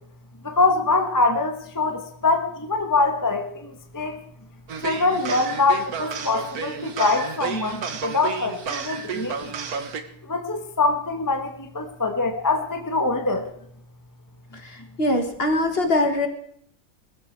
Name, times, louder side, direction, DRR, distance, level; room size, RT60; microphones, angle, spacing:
voice 1, 0.4-4.2 4.8-9.5 10.2-13.5, left 3 dB, 15° left, 5 dB, 1.3 m, -24 dB
sound 1, 4.7-10.0, right 6 dB, 65° right, 1.8 m, -31 dB
voice 2, 14.5-16.3, left 1 dB, 40° left, 6 dB, 1.9 m, -23 dB
21.0 x 13.0 x 4.7 m, 0.69 s
omnidirectional pair, 1.7 m